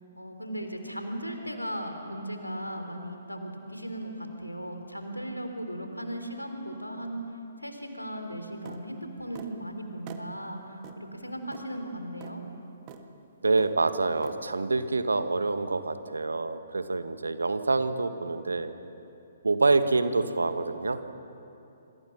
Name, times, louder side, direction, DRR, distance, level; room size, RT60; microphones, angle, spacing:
voice 1, 0.2-7.2 7.6-12.4, right 1 dB, 85° left, 5 dB, 3.3 m, -37 dB
sound 1, 8.7-8.8 9.3-9.5 10.1-10.3 10.8-11.0 11.5-11.7 12.2-12.3 12.9-13.0 13.6-13.8 14.2-14.4, right 10 dB, 30° right, 1.7 m, -45 dB
voice 2, 13.4-18.7 19.4-21.0, right 3 dB, 70° right, 10 dB, 1.5 m, -26 dB
27.0 x 26.0 x 5.9 m, 2.7 s
figure-of-eight pair, 125°, 0 cm